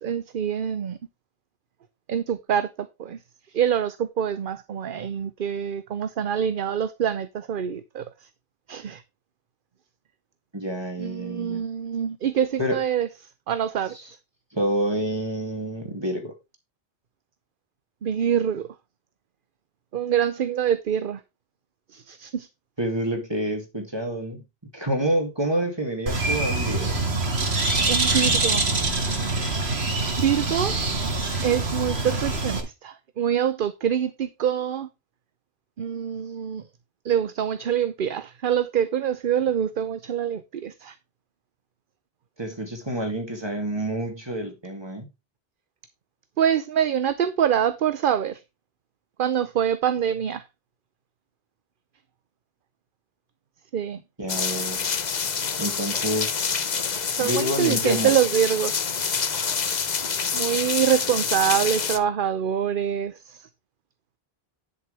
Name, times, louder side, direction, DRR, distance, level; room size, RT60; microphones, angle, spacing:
voice 1, 0.0-1.0 2.1-3.2 3.5-8.1 8.7-9.0 11.0-13.1 13.5-13.9 18.0-18.7 19.9-21.2 21.9-22.5 27.9-28.6 30.2-30.8 31.4-34.9 35.8-36.6 37.0-40.9 46.4-48.4 49.2-50.4 53.7-54.0 57.2-59.3 60.3-63.4, right 9 dB, 60° right, 0.8 m, -25 dB
voice 2, 10.5-11.6 12.6-12.8 13.9-14.1 14.5-16.3 22.8-24.4 24.7-27.0 42.4-45.1 54.2-54.9 55.6-56.7 57.2-58.1, right 1 dB, 25° right, 2.8 m, -28 dB
Bird, 26.1-32.6, right 2 dB, 85° right, 2.2 m, -24 dB
sound 1, 54.3-62.0, left 6 dB, 45° left, 0.9 m, -27 dB
10.5 x 6.9 x 3.3 m
omnidirectional pair, 1.0 m